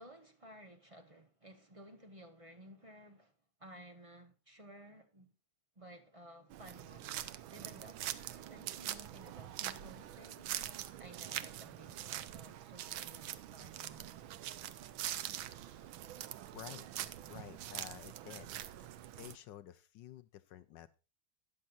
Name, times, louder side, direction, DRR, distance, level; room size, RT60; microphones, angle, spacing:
voice 1, 0.0-5.3 5.8-14.1, right 1 dB, 25° right, 0.7 m, -56 dB
sound 1, 6.5-19.4, right 12 dB, 80° right, 1.5 m, -44 dB
voice 2, 15.6-15.9 16.5-16.9 17.3-18.5 18.8-18.9 19.2-20.9, left 12 dB, 70° left, 1.2 m, -51 dB
13.5 x 9.9 x 2.5 m
omnidirectional pair, 2.2 m